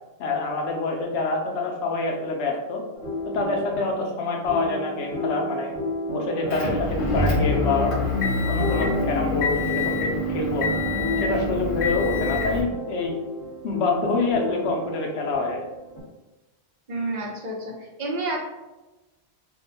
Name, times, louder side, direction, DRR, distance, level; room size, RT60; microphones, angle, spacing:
voice 1, 0.2-2.8 3.3-5.7 6.1-8.0 8.5-10.7 11.2-13.1 13.6-15.6, left 3 dB, 80° left, 1 dB, 0.9 m, -26 dB
sound 1, 3.0-16.0, left 1 dB, 30° left, 1.5 m, -33 dB
Motor vehicle (road) / Engine, 6.5-12.6, left 2 dB, 55° left, 0.8 m, -25 dB
voice 2, 16.9-18.5, right 2 dB, 45° right, -2 dB, 0.7 m, -30 dB
2.7 x 2.2 x 3.9 m, 1.1 s
omnidirectional pair, 1.1 m